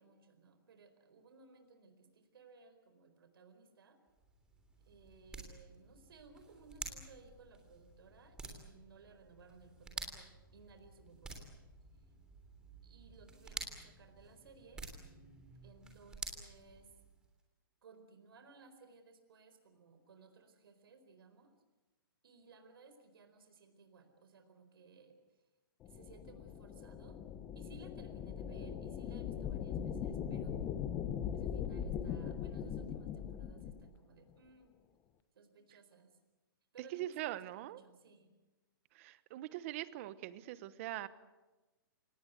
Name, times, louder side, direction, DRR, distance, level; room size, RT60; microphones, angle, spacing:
voice 1, 0.0-4.0 4.8-11.5 12.8-14.9 15.6-16.9 17.8-21.5 22.2-25.2 25.8-27.2 27.5-30.8 31.3-34.7 35.3-36.2 36.7-38.3, right 4 dB, 75° right, 7 dB, 4.5 m, -60 dB
sound 1, 4.1-17.3, right 3 dB, 5° right, 3.2 m, -50 dB
sound 2, 25.8-33.9, left 8 dB, 20° left, 1.1 m, -40 dB
voice 2, 36.9-37.8 38.9-41.1, right 14 dB, 35° right, 15 dB, 1.1 m, -42 dB
27.0 x 19.0 x 8.2 m, 1.1 s
hypercardioid pair, 160°, 12 cm